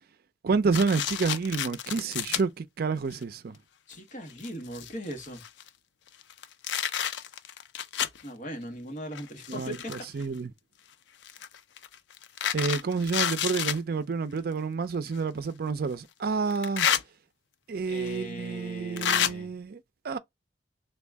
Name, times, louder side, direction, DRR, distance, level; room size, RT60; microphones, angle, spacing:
voice 1, 0.4-3.5 9.5-10.5 12.5-16.9 17.7-20.2, right 4 dB, 55° right, 0.4 m, -29 dB
sound 1, 0.7-2.4 3.1-3.2 3.9-4.0 4.3-5.7 6.2-8.2 9.1-10.2 11.2-13.8 15.1-15.2 16.5-17.0 18.1-18.2 19.0-19.3, left 9 dB, 80° left, 0.4 m, -30 dB
voice 2, 3.9-5.4 8.2-9.9 17.9-19.5, equal, 45° left, 1.1 m, -39 dB
3.6 x 2.3 x 3.3 m
head